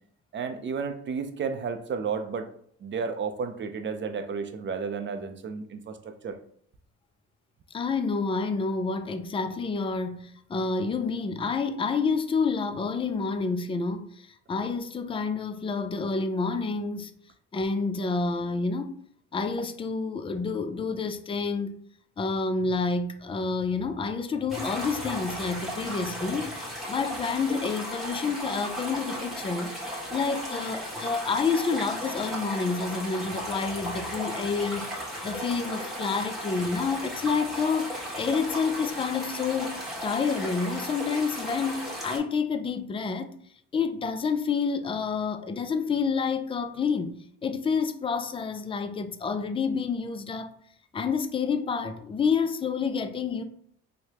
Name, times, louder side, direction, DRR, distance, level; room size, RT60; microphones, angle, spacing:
voice 1, 0.3-2.5 2.8-6.4, right 5 dB, 40° right, 0.5 m, -32 dB
voice 2, 7.7-17.1 17.5-19.0 19.3-21.7 22.2-29.7 30.1-37.9 38.2-43.3 43.7-47.2 47.4-50.5 50.9-53.4, left 5 dB, 20° left, 0.3 m, -29 dB
sound 1, 24.5-42.2, equal, ahead, 1.3 m, -35 dB
4.7 x 2.1 x 2.8 m
cardioid pair, 90°, 30 cm